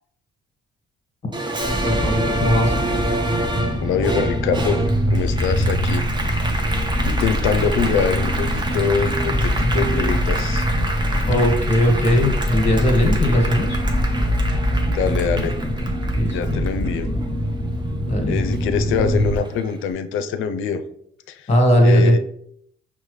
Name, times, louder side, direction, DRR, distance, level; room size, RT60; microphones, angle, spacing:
Applause, 1.3-18.1 18.5-19.7, right 2 dB, 20° right, 0.7 m, -28 dB
sound 1, 1.6-19.4, equal, 5° left, 1.0 m, -23 dB
voice 1, 1.8-2.8 11.3-13.8 16.1-16.6 18.0-18.4 21.5-22.2, equal, 35° left, 2 dB, 1.3 m, -18 dB
voice 2, 3.8-6.0 7.0-10.7 11.1-11.2 14.9-15.6 16.2-17.1 18.3-20.8 21.3-21.5 21.8-22.2, left 6 dB, 85° left, 11 dB, 0.4 m, -24 dB
5.4 x 2.1 x 3.2 m, 0.68 s
cardioid pair, 90°, 20 cm